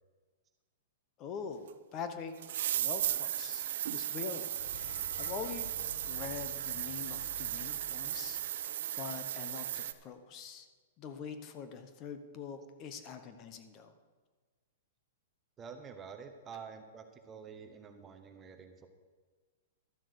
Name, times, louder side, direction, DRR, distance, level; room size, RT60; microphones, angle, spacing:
voice 1, 1.2-2.3 2.7-4.5 4.8-5.7 6.0-10.7 11.0-13.9, left 6 dB, 25° left, 9 dB, 0.9 m, -44 dB
sound 1, 1.7-1.8 2.4-9.9, right 11 dB, 60° right, 0.6 m, -36 dB
sound 2, 4.4-8.8, left 7 dB, 80° left, 1.0 m, -52 dB
voice 2, 15.6-18.9, right 6 dB, 15° right, 6 dB, 0.9 m, -48 dB
12.0 x 7.6 x 6.7 m, 1.4 s
hypercardioid pair, 160°, 0 cm